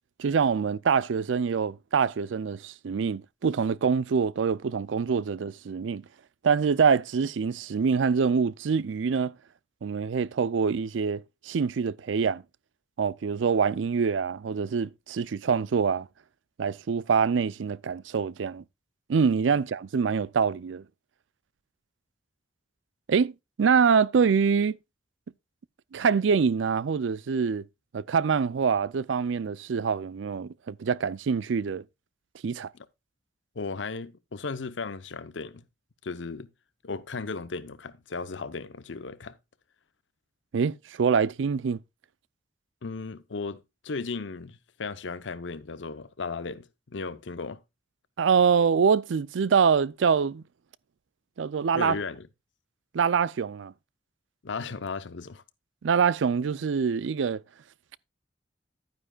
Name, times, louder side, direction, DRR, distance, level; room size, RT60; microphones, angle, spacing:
voice 1, 0.2-6.0 6.4-9.3 9.8-12.4 13.0-16.1 16.6-18.6 19.1-20.8 23.1-23.3 23.6-24.8 25.9-27.6 27.9-31.8 32.4-32.7 40.5-41.8 48.2-50.4 51.4-52.0 52.9-53.7 55.8-57.4, right 6 dB, 90° right, 0.4 m, -25 dB
voice 2, 33.6-35.6 36.0-36.5 36.8-39.3 42.8-47.6 51.7-52.3 54.4-55.4, left 4 dB, 80° left, 0.7 m, -36 dB
11.0 x 9.5 x 2.3 m
head